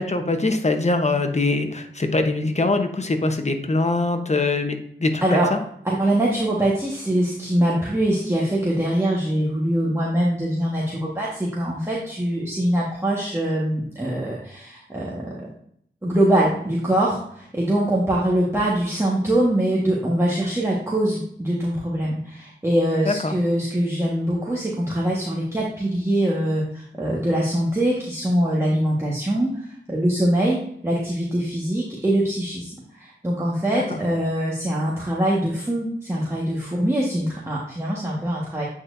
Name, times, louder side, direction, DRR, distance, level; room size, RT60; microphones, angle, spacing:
voice 1, 0.0-5.6 23.0-23.4 33.7-34.0, left 2 dB, 35° left, 5 dB, 1.0 m, -23 dB
voice 2, 5.8-15.5 16.0-30.6 30.8-38.7, right 1 dB, 15° right, -5 dB, 1.5 m, -23 dB
8.7 x 4.3 x 2.6 m, 0.68 s
cardioid pair, 45°, 20 cm